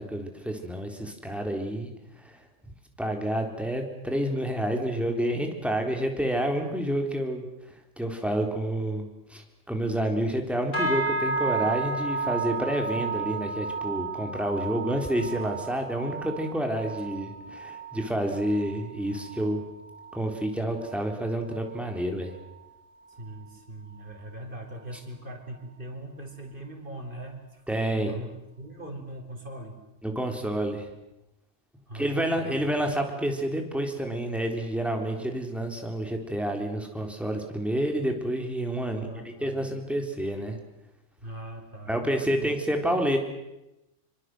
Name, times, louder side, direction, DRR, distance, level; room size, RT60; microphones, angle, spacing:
voice 1, 0.0-1.9 2.2-2.4 2.6-2.7 3.0-7.5 8.0-19.7 20.1-22.3 27.7-28.2 30.0-30.9 31.9-40.6 41.9-43.2, right 1 dB, ahead, 3 dB, 3.8 m, -29 dB
sound 1, 10.7-20.3 20.6-21.0 21.4-21.7 22.3-22.4, right 3 dB, 85° left, 7.4 m, -33 dB
voice 2, 23.2-27.6 28.0-29.8 31.9-32.7 38.9-39.8 41.2-42.5, right 1 dB, 45° right, 3 dB, 4.9 m, -41 dB
25.5 x 25.0 x 7.9 m, 0.93 s
omnidirectional pair, 1.3 m